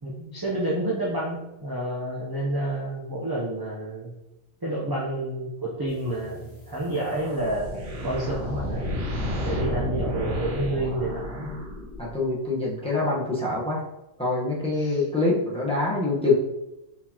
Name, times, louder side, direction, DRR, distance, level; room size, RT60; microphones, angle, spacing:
voice 1, 0.0-4.1 4.6-8.8 9.4-11.6 14.8-15.0, right 1 dB, 25° right, -6 dB, 0.5 m, -29 dB
sound 1, 5.9-13.0, left 4 dB, 35° left, 1.6 m, -51 dB
sound 2, 6.8-12.2, left 1 dB, 70° right, 1.4 m, -31 dB
voice 2, 12.0-13.8 14.2-16.3, left 3 dB, 5° left, -6 dB, 0.9 m, -25 dB
4.6 x 4.0 x 2.8 m, 0.95 s
omnidirectional pair, 1.3 m